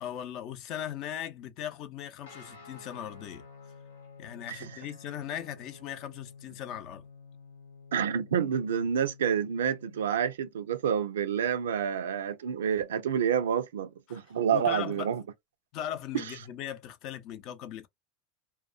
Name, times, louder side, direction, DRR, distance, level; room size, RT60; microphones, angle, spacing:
voice 1, 0.0-3.4 4.2-7.1 14.1-14.3 14.5-15.1 15.7-17.9, left 10 dB, 55° left, 0.5 m, -38 dB
Guitar, 2.2-10.3, left 5 dB, 90° left, 0.8 m, -51 dB
voice 2, 7.9-15.2 16.1-16.2, right 8 dB, 85° right, 0.4 m, -28 dB
2.3 x 2.2 x 2.4 m
hypercardioid pair, 90°, 0 cm